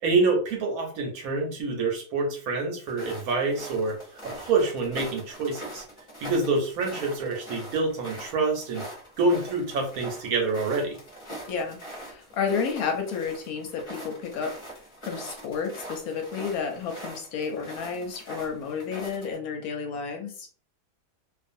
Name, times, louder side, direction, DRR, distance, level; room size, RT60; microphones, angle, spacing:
voice 1, 0.0-4.0 4.2-5.8 6.2-8.8 9.2-11.0, right 3 dB, 70° right, 2 dB, 1.0 m, -26 dB
sound 1, 2.9-19.3, right 1 dB, 25° left, 0.7 m, -42 dB
voice 2, 11.5-14.5 15.0-20.5, left 6 dB, 70° left, 3 dB, 1.0 m, -31 dB
2.4 x 2.4 x 2.5 m, 0.42 s
omnidirectional pair, 1.7 m